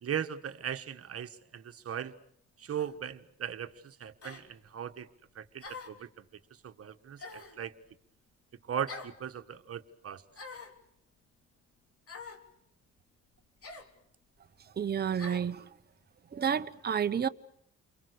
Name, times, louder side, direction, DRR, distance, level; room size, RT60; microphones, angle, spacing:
voice 1, 0.0-2.1 2.6-5.1 5.3-6.2 6.5-7.7 8.6-10.2, right 8 dB, 50° right, 1.6 m, -38 dB
sound 1, 2.8-3.0 4.2-4.5 5.6-6.0 7.2-7.6 8.9-9.2 10.3-10.8 12.1-12.4 13.6-13.9 15.2-15.5, left 3 dB, 50° left, 3.6 m, -45 dB
voice 2, 14.8-15.7 16.3-17.3, right 7 dB, 35° right, 0.9 m, -30 dB
29.5 x 23.5 x 6.8 m
cardioid pair, 90°, 30 cm